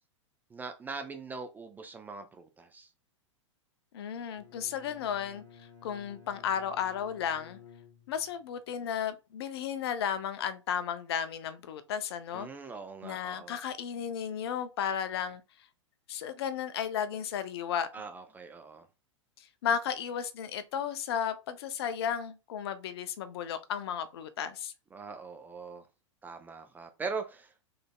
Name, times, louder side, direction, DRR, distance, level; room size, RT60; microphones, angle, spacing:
voice 1, 0.5-2.9 12.3-13.6 17.9-18.9 24.9-25.8 26.2-27.5, right 4 dB, 10° right, 0.3 m, -41 dB
voice 2, 3.9-5.4 5.8-7.6 8.1-12.5 13.0-15.4 16.1-17.9 19.4-24.7, left 8 dB, 55° left, 0.5 m, -34 dB
Bowed string instrument, 4.3-8.5, left 7 dB, 80° left, 0.9 m, -54 dB
3.9 x 3.2 x 2.3 m
figure-of-eight pair, 95°, 16 cm